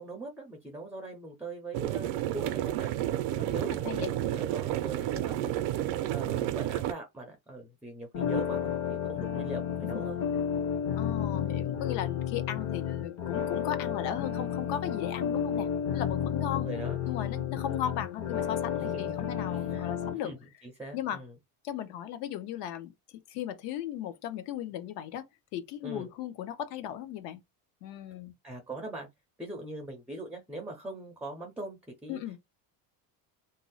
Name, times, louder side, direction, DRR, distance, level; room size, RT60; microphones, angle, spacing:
voice 1, 0.0-10.2 16.6-17.0 18.7-19.1 19.5-21.3 25.8-26.1 28.4-29.1 29.4-32.2, right 2 dB, 5° right, 0.4 m, -42 dB
sound 1, 1.7-6.9, right 13 dB, 70° right, 0.5 m, -31 dB
sound 2, 8.1-20.1, left 8 dB, 40° left, 0.8 m, -32 dB
voice 2, 11.0-16.7 17.0-20.3 20.9-21.2 21.6-22.9 23.3-25.2 25.5-27.4 27.8-28.3 32.1-32.4, left 10 dB, 70° left, 0.8 m, -36 dB
2.7 x 2.0 x 3.8 m
cardioid pair, 150°, 43 cm